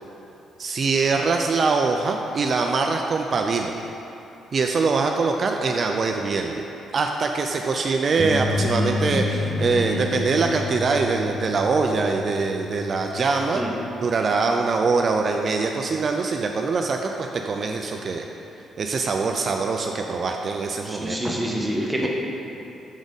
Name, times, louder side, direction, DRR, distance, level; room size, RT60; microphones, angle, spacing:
voice 1, 0.6-3.7 4.5-6.6 6.9-13.6 14.0-18.3 18.8-21.2, right 4 dB, 45° right, 3 dB, 0.4 m, -23 dB
sound 1, 8.2-13.8, left 3 dB, 40° left, 1.3 m, -28 dB
voice 2, 20.8-22.1, right 1 dB, 10° right, -2 dB, 1.0 m, -26 dB
6.2 x 3.9 x 5.2 m, 3.0 s
cardioid pair, 90°, 0 cm